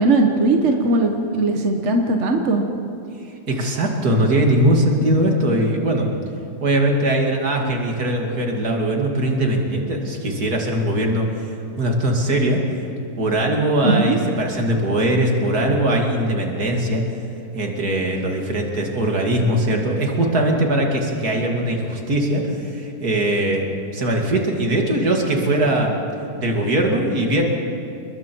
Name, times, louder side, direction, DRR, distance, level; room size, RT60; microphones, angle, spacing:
voice 1, 0.0-2.6 13.8-14.2, right 2 dB, 50° right, 3 dB, 1.7 m, -19 dB
voice 2, 3.5-6.1 6.6-11.3 11.8-12.6 13.2-17.0 17.5-23.6 23.9-26.0 26.4-27.4, right 1 dB, 80° right, 1 dB, 2.9 m, -20 dB
30.0 x 21.0 x 4.6 m, 2.6 s
omnidirectional pair, 1.6 m